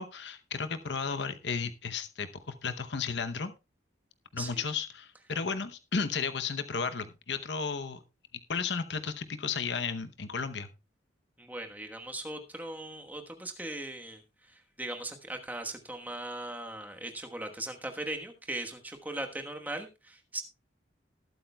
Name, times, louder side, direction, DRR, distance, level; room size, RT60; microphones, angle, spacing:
voice 1, 0.0-3.5 4.3-8.0 8.5-10.7, left 5 dB, 75° left, 10 dB, 0.8 m, -34 dB
voice 2, 11.4-14.2 14.5-20.4, right 1 dB, 10° right, 4 dB, 1.2 m, -39 dB
19.5 x 8.6 x 2.3 m, 0.27 s
head